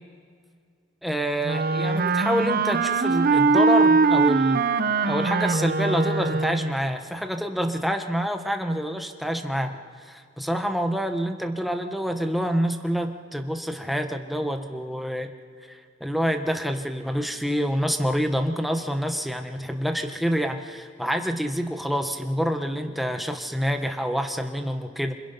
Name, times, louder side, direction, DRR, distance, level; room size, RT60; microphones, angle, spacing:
voice 1, 1.0-4.6 5.0-15.3 15.7-25.1, equal, ahead, 5 dB, 1.2 m, -27 dB
Wind instrument woodwind instrument, 1.4-6.8, right 4 dB, 50° right, 0.7 m, -21 dB
27.5 x 25.5 x 5.7 m, 2.1 s
head